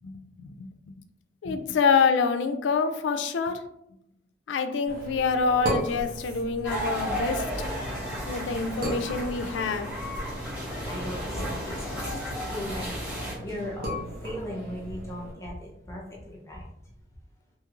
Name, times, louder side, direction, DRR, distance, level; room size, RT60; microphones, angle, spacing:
voice 1, 1.4-3.6 4.5-7.4 8.2-9.9, left 5 dB, 90° left, 8 dB, 0.3 m, -26 dB
sound 1, 4.9-15.3, equal, 50° right, 0.7 m, -37 dB
sound 2, 6.6-13.3, equal, 5° right, 1.1 m, -33 dB
voice 2, 10.8-16.9, equal, 15° left, -2 dB, 0.4 m, -38 dB
2.9 x 2.8 x 2.4 m, 0.80 s
head